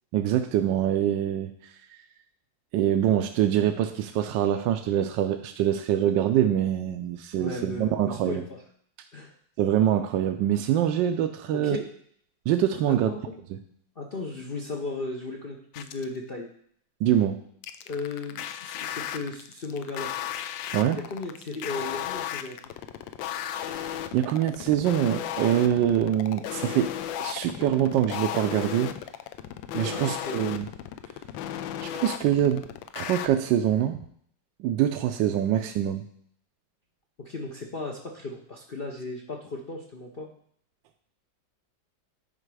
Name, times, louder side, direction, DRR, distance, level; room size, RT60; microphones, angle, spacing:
voice 1, 0.1-1.5 2.7-8.4 9.6-11.8 12.5-13.1 17.0-17.4 20.7-21.0 23.6-23.8 24.1-26.9 27.2-28.9 29.7-30.7 31.8-32.7 33.0-34.0 34.6-36.0, right 11 dB, 80° right, 6 dB, 1.3 m, -24 dB
voice 2, 7.4-8.6 9.1-9.3 11.5-11.8 12.9-13.4 14.0-16.5 17.9-20.1 20.9-22.6 29.7-30.4 37.2-40.3, left 3 dB, 50° left, 1 dB, 0.6 m, -36 dB
sound 1, 15.7-16.2 17.6-33.3, left 11 dB, 85° left, 1.3 m, -35 dB
9.9 x 5.0 x 4.8 m, 0.65 s
omnidirectional pair, 2.0 m